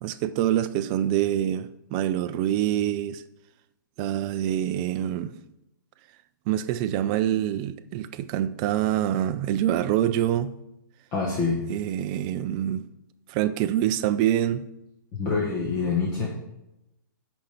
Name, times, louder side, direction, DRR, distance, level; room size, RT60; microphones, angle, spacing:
voice 1, 0.0-3.2 4.0-5.3 6.5-10.5 11.7-12.9 13.3-14.6, right 11 dB, 20° right, 0.3 m, -25 dB
voice 2, 11.1-11.6 15.1-16.3, left 4 dB, 25° left, 1.4 m, -26 dB
8.6 x 5.2 x 5.8 m
hypercardioid pair, 165°, 11 cm